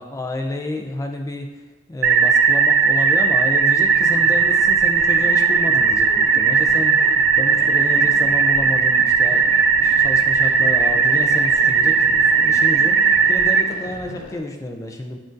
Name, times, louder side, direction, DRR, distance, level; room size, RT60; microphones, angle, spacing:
voice 1, 0.0-1.5 1.9-15.2, left 1 dB, 15° left, 3 dB, 0.3 m, -30 dB
sound 1, 2.0-13.6, right 5 dB, 75° right, 0.3 m, -17 dB
sound 2, 3.9-14.4, left 2 dB, 85° left, 0.5 m, -38 dB
5.7 x 2.5 x 2.6 m, 1.3 s
head